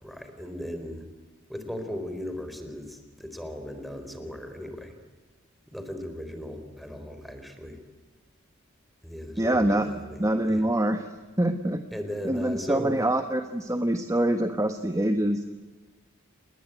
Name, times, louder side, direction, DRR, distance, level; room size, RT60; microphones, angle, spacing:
voice 1, 0.0-1.0 1.5-4.9 5.7-7.8 9.0-10.2 10.5-10.6 11.9-13.0, left 1 dB, ahead, 7 dB, 4.2 m, -37 dB
voice 2, 9.4-9.9 10.2-11.1 11.4-11.8 12.2-15.4, right 1 dB, 15° right, 8 dB, 1.3 m, -25 dB
29.5 x 20.5 x 9.2 m, 1.2 s
head